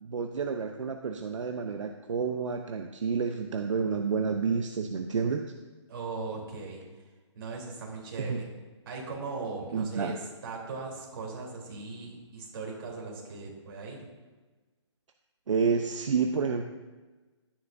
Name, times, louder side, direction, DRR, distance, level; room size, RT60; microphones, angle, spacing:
voice 1, 0.0-5.5 8.2-8.4 9.7-10.1 15.5-16.6, right 5 dB, 75° right, 5 dB, 0.8 m, -29 dB
voice 2, 5.9-6.8 7.4-8.5 8.9-14.0, right 3 dB, 50° right, -3 dB, 3.5 m, -39 dB
13.0 x 10.0 x 2.7 m, 1.3 s
hypercardioid pair, 160°, 16 cm